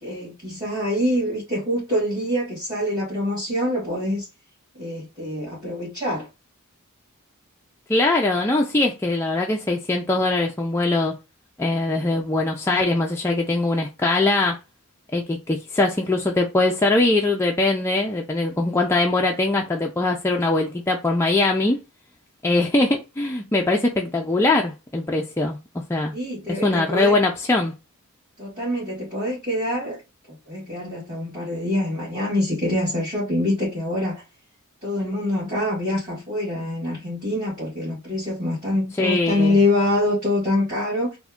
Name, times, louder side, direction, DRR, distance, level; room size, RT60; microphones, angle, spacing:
voice 1, 0.0-4.3 4.7-6.3 26.1-27.2 28.4-30.0 30.3-34.2 34.8-41.2, left 1 dB, 15° right, 2.0 m, -25 dB
voice 2, 7.9-11.1 11.6-14.6 15.1-21.8 22.4-26.1 26.5-27.7 39.0-39.6, left 2 dB, 10° left, 0.3 m, -22 dB
3.5 x 2.1 x 3.5 m
head